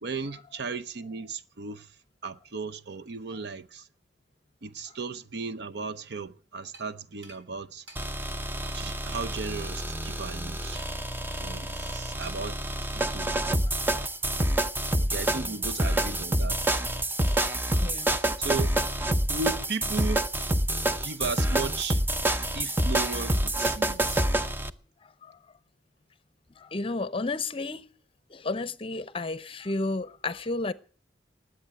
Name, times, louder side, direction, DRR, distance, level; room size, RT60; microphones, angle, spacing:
voice 1, 0.0-1.9 2.2-3.9 4.6-7.8 8.7-10.8 11.4-12.6 12.9-13.3 15.1-16.7 17.3-17.4 18.4-18.7 19.3-20.3 21.0-22.0 22.5-24.2, right 4 dB, 65° right, 0.7 m, -36 dB
sound 1, 6.7-6.9 7.2-7.4 7.9-8.0 8.6-8.8 9.3-9.4 10.7-11.1 12.2-12.5, right 2 dB, 80° right, 3.4 m, -49 dB
sound 2, 7.9-24.7, right 1 dB, 10° right, 0.6 m, -27 dB
voice 2, 17.8-18.2 25.0-25.4 26.6-27.9 28.3-30.7, left 3 dB, 30° left, 0.7 m, -32 dB
19.5 x 7.8 x 7.7 m
head